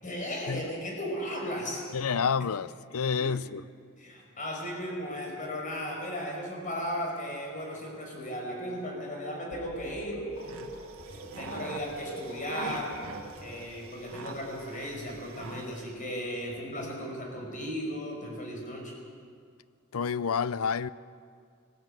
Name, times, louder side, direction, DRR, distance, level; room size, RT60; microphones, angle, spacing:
voice 1, 0.0-1.8 3.2-3.4 4.0-10.2 11.4-12.9 13.4-18.9, equal, 40° left, 0 dB, 5.6 m, -36 dB
voice 2, 1.9-3.6 19.9-20.9, left 6 dB, 85° left, 17 dB, 0.6 m, -29 dB
sound 1, 9.5-13.9, right 1 dB, 65° left, 5.0 m, -43 dB
sound 2, 10.4-15.9, right 4 dB, 75° right, 1.6 m, -43 dB
20.5 x 15.5 x 9.1 m, 2.3 s
head